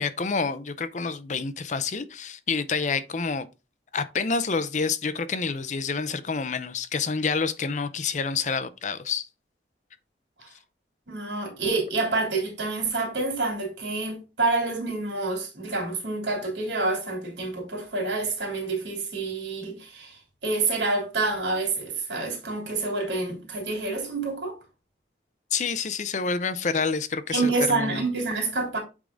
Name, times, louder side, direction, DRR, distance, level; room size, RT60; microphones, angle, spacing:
voice 1, 0.0-3.5 3.9-9.3 25.5-28.0, left 5 dB, 40° left, 0.6 m, -28 dB
voice 2, 11.1-24.6 27.3-28.8, right 3 dB, 80° right, 3.4 m, -28 dB
8.2 x 3.7 x 3.8 m
head